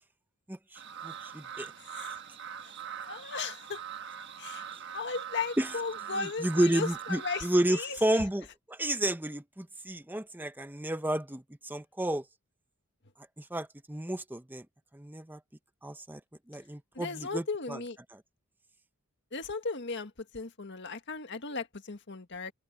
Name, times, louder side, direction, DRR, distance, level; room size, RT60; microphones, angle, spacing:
voice 1, 0.5-1.7 5.6-5.7 6.1-12.2 13.4-14.7 14.9-15.4 15.8-16.2 16.5-17.8 18.1-18.2, right 1 dB, 10° right, 0.8 m, -31 dB
sound 1, 0.8-7.6, right 8 dB, 55° right, 1.4 m, -42 dB
voice 2, 3.1-3.8 4.4-4.6 4.9-8.0 17.0-18.0 19.3-22.5, left 4 dB, 55° left, 1.8 m, -36 dB
head